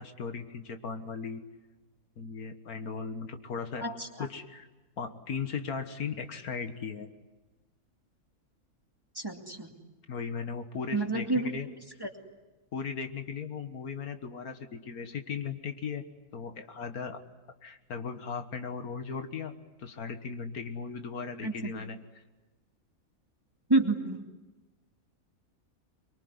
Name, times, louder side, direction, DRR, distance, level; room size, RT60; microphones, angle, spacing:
voice 1, 0.0-1.4 2.2-3.8 4.2-4.7 5.0-7.1 10.1-11.7 12.7-16.0 16.3-17.2 17.6-19.5 19.8-22.0, left 5 dB, 90° left, 7 dB, 2.0 m, -37 dB
voice 2, 9.2-9.7 10.9-11.5 12.0-12.1 21.4-21.7 23.7-24.2, right 2 dB, 15° right, 3 dB, 2.3 m, -28 dB
24.5 x 23.0 x 9.7 m, 1.2 s
omnidirectional pair, 1.5 m